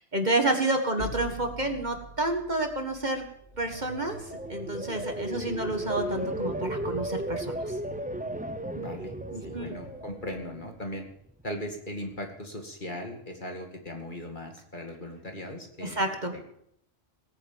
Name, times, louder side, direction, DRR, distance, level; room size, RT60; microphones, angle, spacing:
voice 1, 0.0-3.2 3.6-4.2 4.5-7.8 9.3-9.8 15.8-16.3, right 2 dB, 40° right, 5 dB, 1.8 m, -29 dB
sound 1, 1.0-4.8, left 1 dB, 15° left, 3.9 m, -44 dB
sound 2, 3.5-10.4, right 1 dB, 70° left, 8.2 m, -48 dB
sound 3, 3.7-10.9 11.3-11.7, right 1 dB, 10° right, 0.6 m, -35 dB
voice 2, 5.3-5.7 8.7-9.1 9.4-11.1 11.4-16.1 16.3-16.4, left 1 dB, 40° left, 3 dB, 2.4 m, -38 dB
18.0 x 9.8 x 7.3 m, 0.73 s
omnidirectional pair, 1.2 m